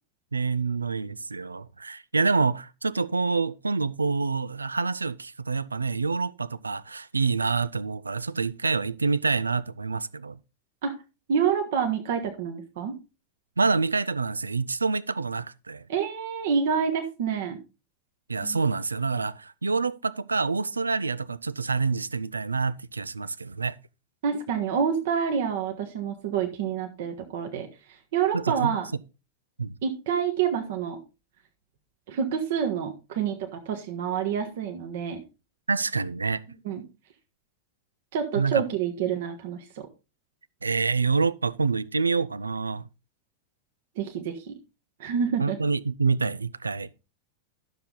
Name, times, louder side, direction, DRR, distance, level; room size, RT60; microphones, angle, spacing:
voice 1, 0.3-10.4 13.6-15.9 18.3-23.7 28.3-28.8 29.6-29.8 35.7-36.4 38.4-38.6 40.6-42.9 45.4-46.9, right 4 dB, 80° right, 0.5 m, -27 dB
voice 2, 11.3-13.0 15.9-17.6 18.4-18.6 24.2-28.9 29.8-31.0 32.1-35.2 36.6-36.8 38.1-39.9 44.0-44.5 45.0-45.6, right 7 dB, 55° right, 1.3 m, -28 dB
12.5 x 6.9 x 3.9 m
figure-of-eight pair, 90°, 0 cm